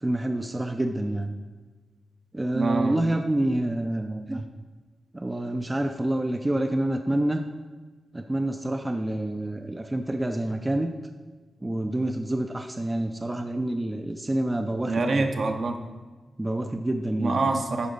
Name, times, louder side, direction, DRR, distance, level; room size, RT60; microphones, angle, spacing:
voice 1, 0.0-1.3 2.3-4.4 5.1-7.4 8.1-10.9 11.6-15.3 16.4-17.4, right 1 dB, 20° right, 5 dB, 0.5 m, -27 dB
voice 2, 2.5-3.0 14.9-15.8 17.2-17.9, right 3 dB, 60° right, 4 dB, 0.9 m, -25 dB
11.5 x 4.5 x 3.9 m, 1.3 s
cardioid pair, 80°, 0 cm